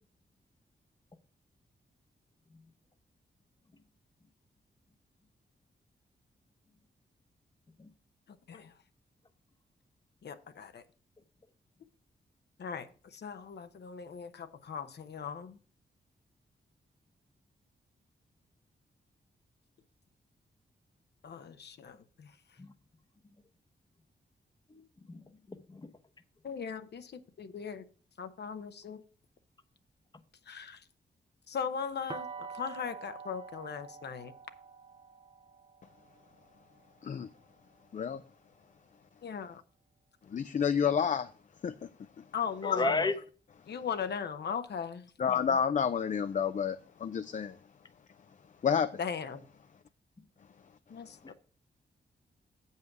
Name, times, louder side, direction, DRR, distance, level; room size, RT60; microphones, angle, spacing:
voice 1, 10.2-10.8 12.6-15.6 21.2-22.4 26.4-27.8 28.2-29.0 30.5-30.8 31.5-34.3 39.2-39.6 42.3-43.1 43.7-45.1 49.0-49.4 50.9-51.3, left 6 dB, 65° left, 0.8 m, -38 dB
voice 2, 24.7-25.9 42.6-43.1 51.2-51.3, left 3 dB, 25° left, 0.8 m, -34 dB
sound 1, 32.1-37.9, right 5 dB, 30° right, 0.6 m, -47 dB
voice 3, 40.3-41.3 41.6-41.9 42.2-42.3 45.2-47.6 48.6-48.9, left 7 dB, 45° left, 0.4 m, -29 dB
7.9 x 5.6 x 5.9 m
cardioid pair, 90°, 18 cm